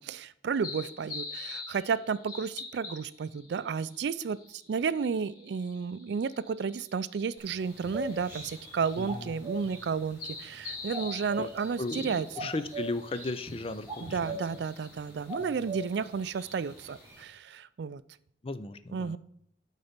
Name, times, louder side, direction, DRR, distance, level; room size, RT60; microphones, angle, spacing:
voice 1, 0.0-12.5 14.0-18.0 18.9-19.2, right 5 dB, 65° right, 17 dB, 0.3 m, -32 dB
sound 1, 0.5-17.1, left 4 dB, 50° left, 2.7 m, -46 dB
sound 2, 7.4-17.2, right 1 dB, 15° right, 2.0 m, -42 dB
voice 2, 9.0-9.3 11.4-11.5 11.8-14.4 15.4-15.7 18.4-19.2, left 2 dB, 30° left, 12 dB, 0.4 m, -36 dB
12.0 x 4.1 x 5.2 m, 0.70 s
head